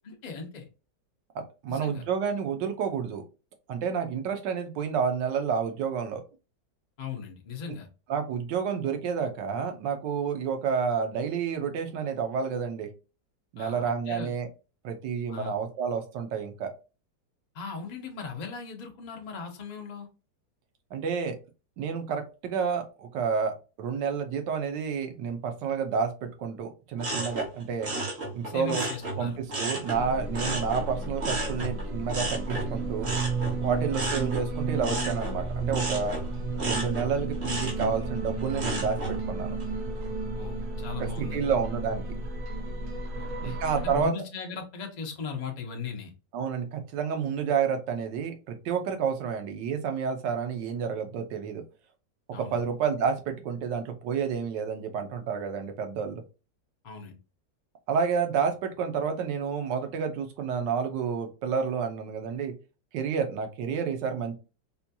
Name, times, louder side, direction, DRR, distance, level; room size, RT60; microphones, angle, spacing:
voice 1, 0.0-0.7 1.7-2.0 7.0-7.9 13.6-14.3 15.3-15.5 17.5-20.1 28.4-29.4 33.7-33.9 40.3-41.6 43.2-46.1 52.3-52.6 56.8-57.2, left 5 dB, 70° left, 2 dB, 0.4 m, -38 dB
voice 2, 1.3-3.2 3.7-6.2 8.1-12.9 13.5-14.5 14.8-16.7 20.9-21.3 21.8-27.9 28.3-28.9 29.2-33.1 33.6-36.2 36.6-39.5 41.0-42.0 43.4-44.1 46.3-51.6 52.4-56.2 57.9-62.5 62.9-64.4, right 6 dB, 85° right, 6 dB, 1.4 m, -30 dB
sound 1, 27.0-30.0 30.3-39.2 39.6-40.1, right 2 dB, 50° right, 1.5 m, -34 dB
sound 2, 29.9-44.1, right 3 dB, 70° right, 1.5 m, -33 dB
4.2 x 2.2 x 2.7 m, 0.31 s
omnidirectional pair, 1.9 m